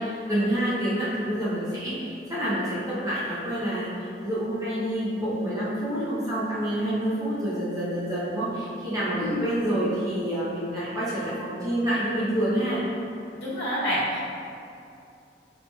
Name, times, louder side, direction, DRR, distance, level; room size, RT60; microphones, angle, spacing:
voice 1, 0.0-3.9 4.2-12.8, right 1 dB, 20° right, -10 dB, 0.6 m, -27 dB
voice 2, 13.3-14.3, equal, 70° left, -10 dB, 1.0 m, -28 dB
4.3 x 2.8 x 2.2 m, 2.5 s
head